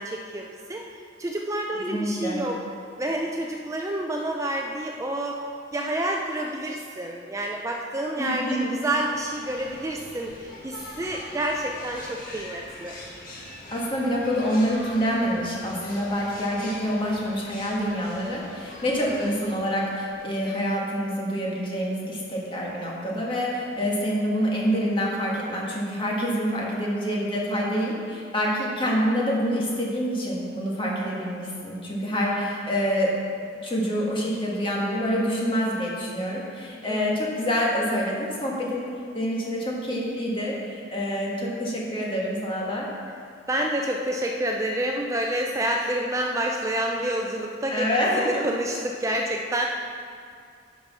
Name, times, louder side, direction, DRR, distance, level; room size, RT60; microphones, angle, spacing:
voice 1, 0.0-2.6 3.0-5.4 5.7-13.0 19.0-19.4 36.9-37.0 43.5-49.7, right 1 dB, 15° right, 1 dB, 0.4 m, -28 dB
voice 2, 1.9-2.4 8.2-8.7 13.7-33.1 33.6-38.9 39.1-42.9 47.7-48.4, equal, 30° left, -4 dB, 1.7 m, -26 dB
sound 1, 8.7-20.4, left 1 dB, 50° left, 1.7 m, -43 dB
9.0 x 5.2 x 6.1 m, 2.4 s
head